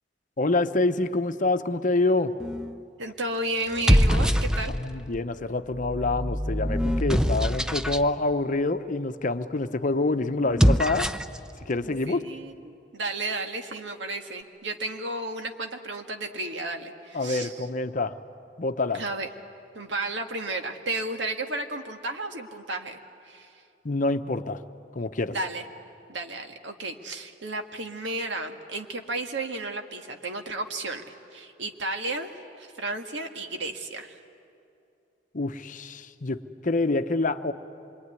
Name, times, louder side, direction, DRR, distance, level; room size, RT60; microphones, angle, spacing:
voice 1, 0.4-2.3 4.7-11.1 11.7-12.2 17.1-18.1 18.6-19.0 23.8-24.6 24.9-25.4 35.3-37.5, left 2 dB, 45° left, 9 dB, 0.8 m, -26 dB
sound 1, 2.4-2.8 3.6-5.0 5.7-8.1 10.4-11.4, equal, 5° right, 0.6 m, -24 dB
voice 2, 3.0-4.7 11.8-17.6 18.9-19.3 19.7-23.0 23.3-23.5 25.3-25.6 26.1-31.0 31.3-34.2, right 2 dB, 80° right, 5 dB, 1.8 m, -33 dB
26.5 x 23.0 x 9.7 m, 2.6 s
head